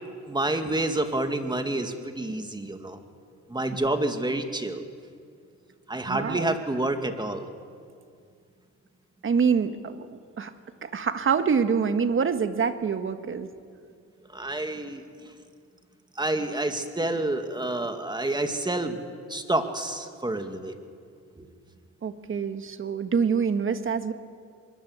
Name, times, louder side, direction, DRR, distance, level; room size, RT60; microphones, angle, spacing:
voice 1, 0.2-3.0 3.5-4.8 5.9-7.5 14.3-15.0 16.2-19.0 19.3-20.7 21.4-21.5, right 2 dB, 15° right, 6 dB, 2.4 m, -28 dB
voice 2, 6.0-6.6 9.2-10.5 10.8-13.5 22.0-24.1, right 6 dB, 45° right, 9 dB, 1.7 m, -26 dB
24.0 x 21.5 x 8.2 m, 2.2 s
cardioid pair, 90°, 30 cm